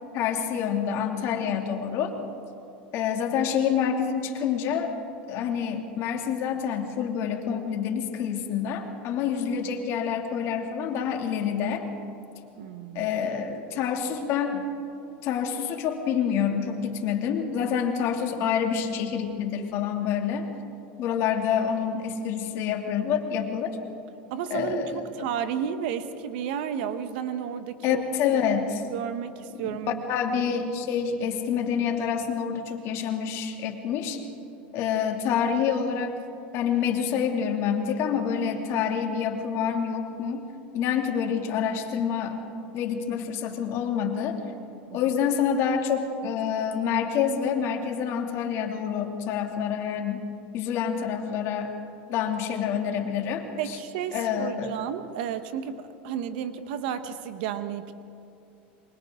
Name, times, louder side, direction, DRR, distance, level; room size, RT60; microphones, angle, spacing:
voice 1, 0.1-2.1 2.9-4.9 5.3-11.8 12.9-14.7 15.2-20.5 21.0-23.8 24.5-25.0 27.8-28.8 29.5-29.8 30.1-34.2 34.7-36.1 36.5-40.4 40.7-42.4 42.7-44.4 44.9-50.3 50.5-51.7 52.1-53.8 54.1-54.7, left 7 dB, 55° left, 3 dB, 2.8 m, -27 dB
voice 2, 12.5-13.1 24.3-28.0 28.3-28.4 28.9-30.0 44.9-45.0 53.6-57.9, right 8 dB, 75° right, 10 dB, 1.3 m, -32 dB
28.0 x 24.0 x 3.9 m, 2.7 s
supercardioid pair, 120°, 5 cm